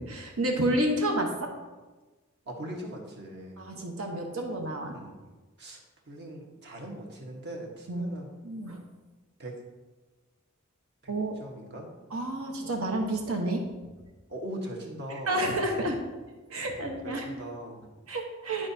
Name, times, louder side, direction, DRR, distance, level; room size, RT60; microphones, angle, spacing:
voice 1, 0.1-1.5 3.6-5.0 7.9-8.1 8.4-8.8 11.1-11.4 12.1-13.6 15.1-16.0 16.5-17.3 18.1-18.7, right 1 dB, 85° right, 2 dB, 1.1 m, -30 dB
voice 2, 2.5-3.6 4.9-5.1 5.6-5.8 6.1-8.3 9.4-9.6 11.0-11.1 11.4-11.9 14.3-15.5 17.0-17.9, right 1 dB, 55° right, 0 dB, 1.3 m, -40 dB
11.0 x 4.8 x 2.8 m, 1.2 s
head